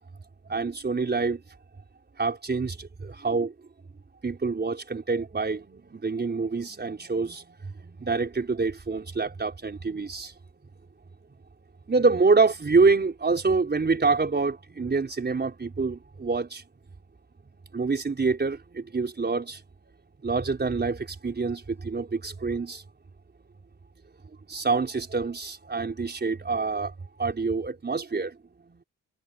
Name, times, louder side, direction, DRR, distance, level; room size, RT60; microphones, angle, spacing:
voice 1, 0.5-1.4 2.2-3.5 4.2-7.4 7.8-10.3 11.9-16.6 17.7-19.6 20.2-22.8 24.5-26.9 27.2-28.3, right 4 dB, 30° right, 4.5 m, -26 dB
cardioid pair, 85°, 31 cm